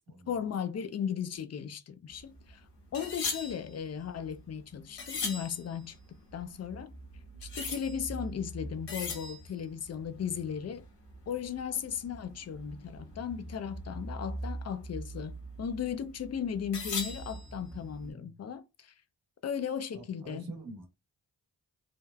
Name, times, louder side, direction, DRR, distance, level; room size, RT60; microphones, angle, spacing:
voice 1, 0.3-2.6 2.9-6.0 6.3-6.9 7.4-10.9 11.3-18.9 19.4-20.5, left 8 dB, 35° left, 0.5 m, -36 dB
sound 1, 2.1-18.1, left 2 dB, 65° left, 1.3 m, -41 dB
voice 2, 17.7-18.3 19.9-20.9, right 2 dB, 55° right, 1.1 m, -46 dB
3.4 x 2.0 x 2.3 m
supercardioid pair, 40°, 44 cm